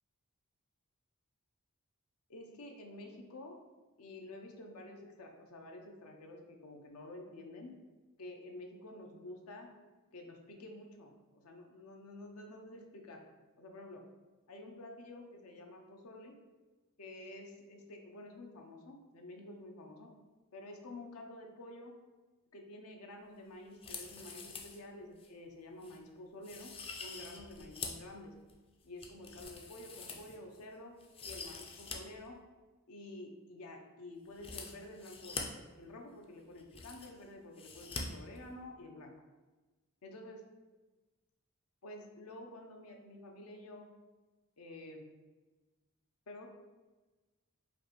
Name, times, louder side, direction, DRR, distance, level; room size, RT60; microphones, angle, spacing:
voice 1, 2.3-3.5 4.0-7.7 8.2-9.7 10.1-13.2 13.6-14.0 14.5-16.4 17.0-20.1 20.5-21.9 22.5-28.3 28.8-30.9 31.2-32.4 32.9-39.1 40.0-40.4 41.8-43.9 44.6-45.1 46.3-46.5, left 1 dB, 75° left, 2 dB, 0.6 m, -50 dB
sound 1, 23.7-24.8 25.2-25.3 25.8-26.0 26.4-28.1 28.5-30.6 31.0-32.0 32.2-32.3 34.3-35.4 36.2-36.3 36.5-37.2 37.6-38.0 38.3-38.4, left 4 dB, 25° left, 0.4 m, -45 dB
5.0 x 2.5 x 3.0 m, 1.2 s
head